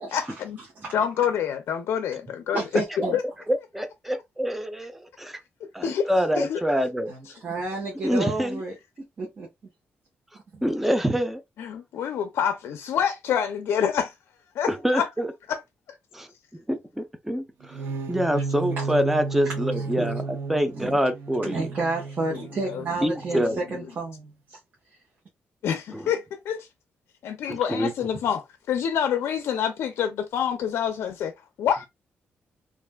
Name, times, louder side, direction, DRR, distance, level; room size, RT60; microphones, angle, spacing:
voice 1, 0.1-0.6 0.9-2.6 3.1-3.2 5.6-6.1 6.4-6.6 11.6-14.1 14.5-15.1 15.5-15.6 15.9-16.0 22.2-22.8 23.3-23.5 25.6-26.7 27.2-31.8, left 8 dB, 85° left, 0.4 m, -27 dB
voice 2, 2.5-3.2 7.1-8.7 9.2-9.5 10.5-10.6 18.8-18.9 19.8-20.2 20.7-21.0 21.4-23.4 23.7-24.6, right 3 dB, 45° right, 1.0 m, -31 dB
voice 3, 3.5-5.4 5.7-7.1 8.0-8.6 10.6-11.4 14.7-15.3 16.1-16.3 16.7-21.6 23.0-23.6 25.9-26.1 27.5-27.9, equal, 5° right, 0.5 m, -26 dB
sound 1, 17.6-23.6, right 4 dB, 80° right, 0.6 m, -33 dB
3.3 x 2.4 x 2.2 m
cardioid pair, 120°, 4 cm